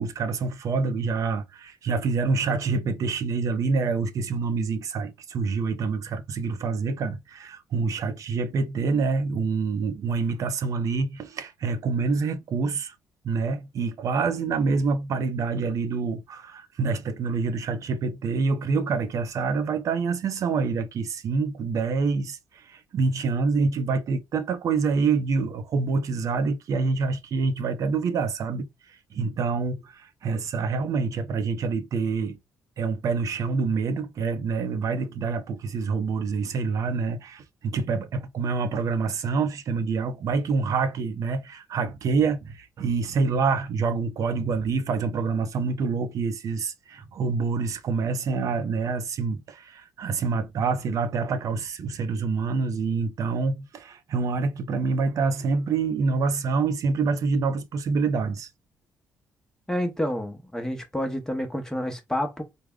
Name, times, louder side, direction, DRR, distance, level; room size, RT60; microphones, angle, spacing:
voice 1, 0.0-12.9 13.2-22.4 22.7-28.7 29.1-32.4 32.8-58.5, right 4 dB, 60° right, 0.6 m, -26 dB
voice 2, 59.7-62.4, left 1 dB, 10° left, 0.8 m, -29 dB
3.4 x 2.1 x 3.6 m
cardioid pair, 85°, 6 cm